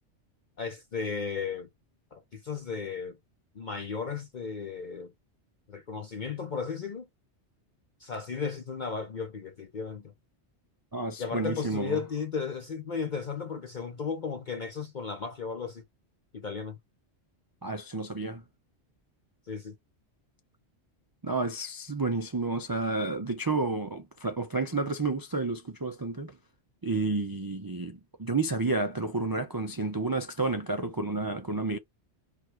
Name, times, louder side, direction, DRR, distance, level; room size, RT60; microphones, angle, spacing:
voice 1, 0.6-1.7 2.1-3.2 3.6-5.1 5.7-7.1 8.0-10.1 11.2-15.8 16.3-16.8 19.5-19.7, left 5 dB, 45° left, 0.8 m, -35 dB
voice 2, 10.9-12.0 17.6-18.4 21.2-26.3 26.8-31.8, right 3 dB, 35° right, 0.3 m, -30 dB
4.6 x 2.4 x 4.5 m
omnidirectional pair, 1.2 m